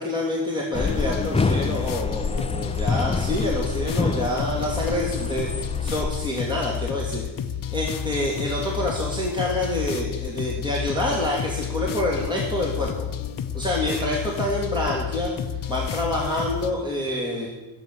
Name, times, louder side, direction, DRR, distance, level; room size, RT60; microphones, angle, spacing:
voice 1, 0.0-7.3 7.7-12.9 13.5-15.3 15.7-17.5, left 1 dB, 10° right, -3 dB, 2.7 m, -27 dB
sound 1, 0.7-16.7, left 9 dB, 50° left, 0.9 m, -31 dB
sound 2, 0.7-6.1, left 3 dB, 15° left, 0.6 m, -27 dB
16.5 x 7.9 x 8.3 m, 1.1 s
wide cardioid pair, 135°, 44 cm